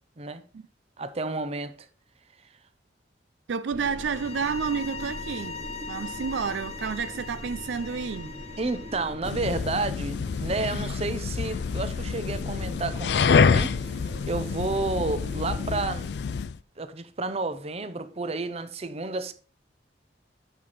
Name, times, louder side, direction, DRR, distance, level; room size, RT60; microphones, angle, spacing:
voice 1, 1.0-1.7 8.6-13.9 14.2-16.4 16.8-19.3, right 3 dB, 35° right, 0.7 m, -31 dB
voice 2, 3.5-8.3, right 6 dB, 85° right, 0.4 m, -30 dB
sound 1, 3.7-15.8, equal, 55° right, 2.4 m, -41 dB
sound 2, 4.0-9.1, left 5 dB, 35° left, 0.7 m, -41 dB
sound 3, 9.2-16.6, left 5 dB, 65° left, 0.4 m, -27 dB
9.3 x 6.0 x 4.0 m
head